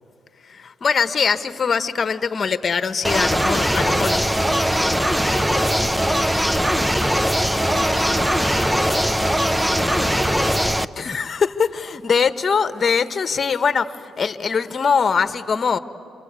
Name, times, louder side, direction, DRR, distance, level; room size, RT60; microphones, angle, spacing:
voice 1, 0.5-4.3 11.0-15.8, left 6 dB, 40° left, 11 dB, 1.2 m, -22 dB
sound 1, 3.0-10.9, equal, 5° right, 0.7 m, -20 dB
voice 2, 4.6-7.1 7.4-8.2 8.5-9.4 9.7-10.5 11.0-11.2, left 3 dB, 25° left, 5 dB, 1.0 m, -37 dB
sound 2, 7.1-10.7, right 1 dB, 30° right, 4.3 m, -36 dB
27.0 x 27.0 x 8.2 m, 2.4 s
cardioid pair, 90°, 0 cm